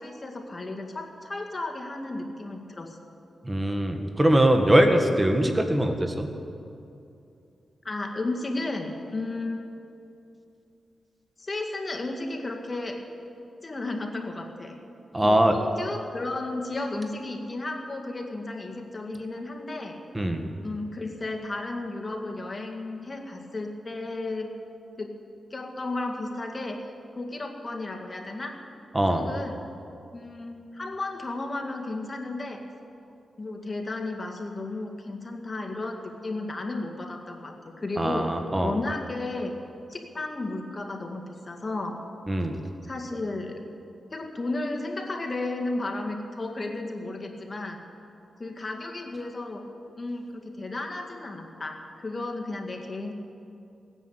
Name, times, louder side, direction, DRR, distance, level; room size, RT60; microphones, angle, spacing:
voice 1, 0.0-3.0 7.8-9.6 11.4-13.0 13.6-14.7 15.2-20.0 20.6-24.5 25.0-25.2 25.5-26.8 27.2-28.6 29.1-29.6 30.1-32.6 33.4-38.3 38.6-39.6 39.9-42.0 42.8-43.6 44.1-47.8 48.4-49.6 50.0-53.1, left 2 dB, 35° left, 3 dB, 2.0 m, -33 dB
voice 2, 3.4-6.3 15.1-15.6 20.1-20.4 28.9-29.3 38.0-38.7 42.3-42.6, right 1 dB, 20° right, 5 dB, 1.6 m, -22 dB
16.0 x 10.0 x 7.9 m, 2.6 s
cardioid pair, 85°, 0 cm